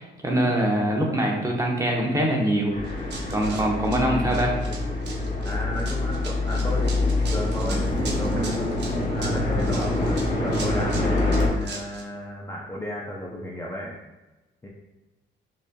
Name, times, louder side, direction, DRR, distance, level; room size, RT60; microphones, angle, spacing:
voice 1, 0.0-2.7 3.3-4.6, right 1 dB, 15° right, -1 dB, 0.8 m, -23 dB
sound 1, 2.7-11.5, left 2 dB, 45° left, 0.9 m, -25 dB
Run, 2.8-12.0, right 4 dB, 60° right, 0.8 m, -40 dB
voice 2, 3.5-3.9 5.4-8.6 9.1-14.0 14.6-14.7, left 1 dB, 15° left, -4 dB, 0.5 m, -34 dB
5.0 x 2.5 x 2.2 m, 1.1 s
cardioid pair, 90°, 20 cm